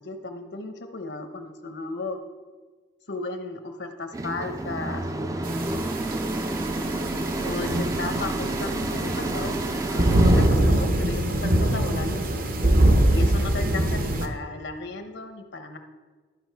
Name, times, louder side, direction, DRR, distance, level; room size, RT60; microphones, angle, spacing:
voice 1, 0.0-2.2 3.1-5.5 7.4-12.6 13.1-15.8, left 3 dB, 70° left, 6 dB, 0.9 m, -35 dB
sound 1, 4.1-10.5, right 2 dB, 20° right, 0.4 m, -30 dB
sound 2, 5.5-14.3, right 1 dB, 50° right, 0.8 m, -23 dB
12.5 x 5.1 x 4.5 m, 1.4 s
head